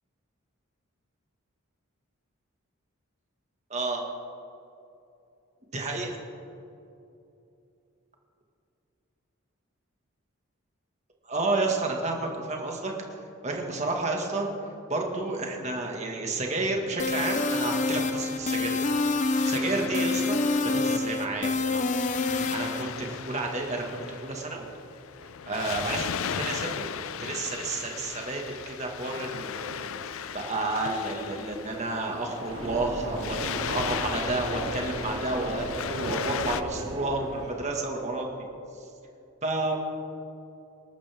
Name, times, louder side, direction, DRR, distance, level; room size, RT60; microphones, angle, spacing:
voice 1, 3.7-4.0 5.7-6.2 11.3-12.9 13.4-14.5 14.9-18.8 19.2-21.9 22.5-23.8 24.2-24.6 25.5-26.9 27.2-38.3 39.4-39.8, right 2 dB, 30° right, 1 dB, 1.9 m, -31 dB
sound 1, 17.0-22.8, left 3 dB, 35° left, 0.6 m, -27 dB
Waves surf, 17.1-36.6, left 7 dB, 70° left, 0.5 m, -37 dB
sound 2, 32.5-38.0, right 1 dB, 65° right, 2.4 m, -36 dB
25.0 x 13.0 x 3.6 m, 2.8 s
head